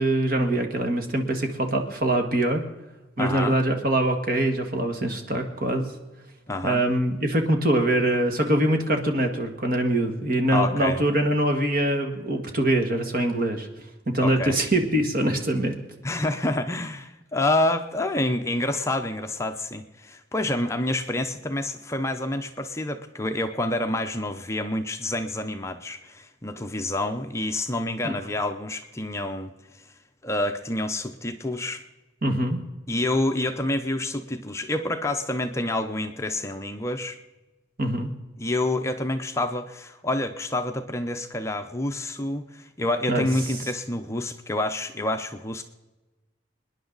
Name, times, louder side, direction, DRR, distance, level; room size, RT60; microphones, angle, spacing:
voice 1, 0.0-2.6 3.2-5.9 6.6-13.7 14.1-15.8 28.0-28.1 32.2-32.6 37.8-38.1 43.1-43.3, right 1 dB, 50° right, 5 dB, 1.8 m, -23 dB
voice 2, 3.2-3.6 6.5-6.8 10.5-11.0 14.2-14.6 16.0-29.9 30.2-31.8 32.9-37.2 38.4-45.6, left 1 dB, 15° left, 6 dB, 0.7 m, -28 dB
26.0 x 10.5 x 4.0 m, 1.1 s
head